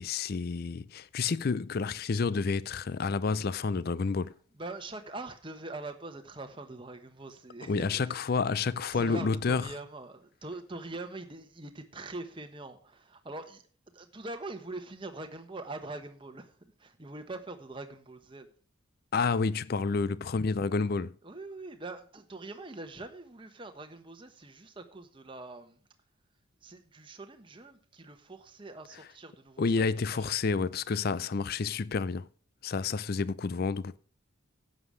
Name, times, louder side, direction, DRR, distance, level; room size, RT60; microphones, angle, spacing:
voice 1, 0.0-4.3 7.6-9.7 19.1-21.2 29.6-32.3 32.6-34.0, left 4 dB, 45° left, 0.4 m, -29 dB
voice 2, 4.6-8.2 8.6-13.6 13.9-16.5 16.8-18.5 21.2-25.8 26.6-29.8 30.1-30.5, right 2 dB, 25° right, 1.1 m, -43 dB
11.0 x 8.0 x 4.9 m
head